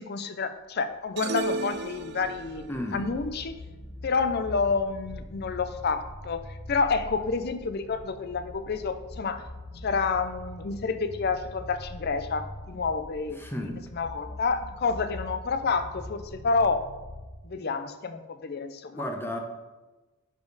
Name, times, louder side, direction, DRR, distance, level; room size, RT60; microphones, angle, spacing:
voice 1, 0.0-3.6 4.0-9.4 9.8-13.4 13.7-16.9 17.4-19.0, left 4 dB, 50° left, 10 dB, 0.5 m, -29 dB
sound 1, 0.9-17.3, left 1 dB, 65° left, 1.1 m, -43 dB
sound 2, 1.2-2.7, right 2 dB, 50° right, 0.5 m, -33 dB
voice 2, 2.7-3.1 13.4-13.8 18.9-19.4, left 1 dB, 10° left, 3 dB, 0.8 m, -33 dB
10.0 x 5.1 x 4.0 m, 1.2 s
head